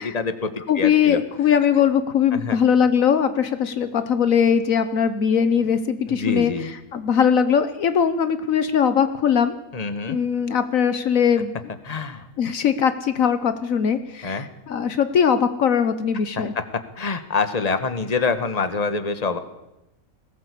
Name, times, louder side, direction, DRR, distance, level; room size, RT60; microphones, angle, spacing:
voice 1, 0.0-1.2 2.3-2.6 6.1-6.7 9.7-10.2 11.9-12.2 14.2-14.5 17.0-19.4, left 4 dB, 30° left, 9 dB, 1.4 m, -26 dB
voice 2, 0.7-9.5 10.1-11.6 12.4-16.5, left 7 dB, 70° left, 11 dB, 1.4 m, -20 dB
20.5 x 17.0 x 8.4 m, 0.95 s
omnidirectional pair, 1.5 m